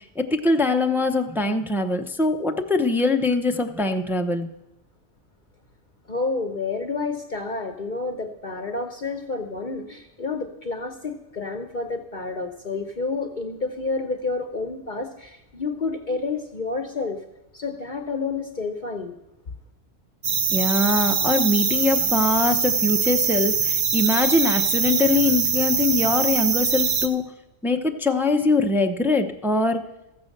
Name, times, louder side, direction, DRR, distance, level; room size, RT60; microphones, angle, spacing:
voice 1, 0.0-4.5 20.5-27.2 27.6-29.8, left 2 dB, 5° right, 4 dB, 0.3 m, -22 dB
voice 2, 6.1-17.2 17.5-19.2, left 3 dB, 45° left, 5 dB, 0.9 m, -29 dB
sound 1, 20.2-27.1, right 6 dB, 55° right, 1.0 m, -23 dB
14.5 x 7.4 x 6.5 m, 0.94 s
omnidirectional pair, 1.4 m